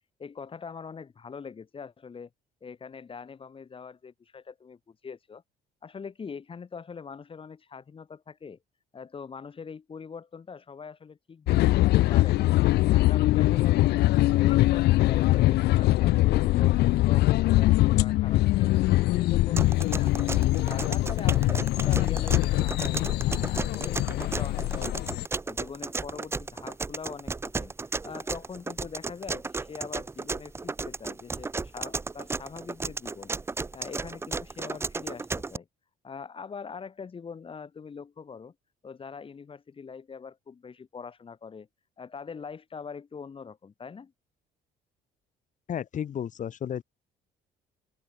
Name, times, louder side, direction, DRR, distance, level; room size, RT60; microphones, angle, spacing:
voice 1, 0.2-2.3 2.6-5.4 5.8-8.6 8.9-12.5 12.9-16.8 17.0-20.3 20.7-25.1 25.5-27.7 28.0-33.3 33.7-35.7 36.0-38.5 38.8-41.7 42.0-44.1, left 5 dB, 30° left, 3.5 m, -43 dB
sound 1, 11.5-25.2, left 17 dB, 80° left, 0.9 m, -23 dB
sound 2, 19.6-35.6, right 3 dB, 15° right, 0.6 m, -34 dB
voice 2, 45.7-46.8, left 9 dB, 50° left, 2.3 m, -33 dB
open air
cardioid pair, 110°, 17 cm